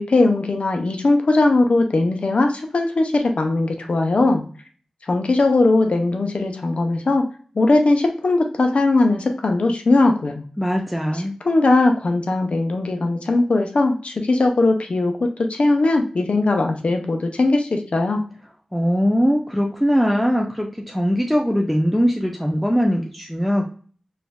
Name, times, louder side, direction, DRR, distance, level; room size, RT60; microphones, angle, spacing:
voice 1, 0.0-4.4 5.1-7.2 7.5-10.4 11.1-18.2, left 2 dB, 75° left, 4 dB, 0.6 m, -19 dB
voice 2, 10.6-11.3 18.7-23.7, equal, ahead, 0 dB, 0.5 m, -20 dB
4.2 x 2.5 x 2.2 m, 0.43 s
wide cardioid pair, 55°, 2 cm